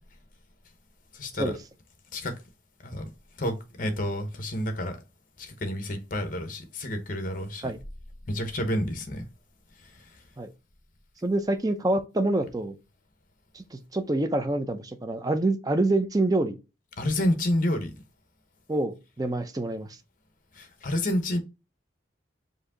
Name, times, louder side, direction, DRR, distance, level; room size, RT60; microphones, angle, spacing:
voice 1, 1.1-1.5 2.1-2.3 2.8-3.0 3.4-5.0 5.4-7.7 8.3-9.2 17.0-17.9 20.5-21.4, left 1 dB, 45° left, 0.9 m, -29 dB
voice 2, 11.2-12.8 13.5-16.6 18.7-19.9, right 2 dB, 20° right, 0.5 m, -26 dB
4.8 x 2.7 x 3.7 m
head